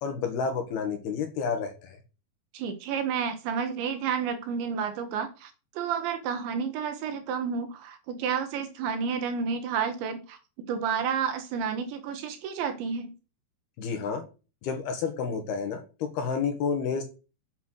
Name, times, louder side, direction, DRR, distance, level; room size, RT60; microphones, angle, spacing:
voice 1, 0.0-2.0 13.8-14.2 14.6-17.0, left 6 dB, 65° left, 5 dB, 3.1 m, -30 dB
voice 2, 2.5-10.4 10.7-13.2, right 6 dB, 70° right, 7 dB, 3.6 m, -30 dB
8.2 x 8.0 x 6.4 m, 0.33 s
omnidirectional pair, 5.6 m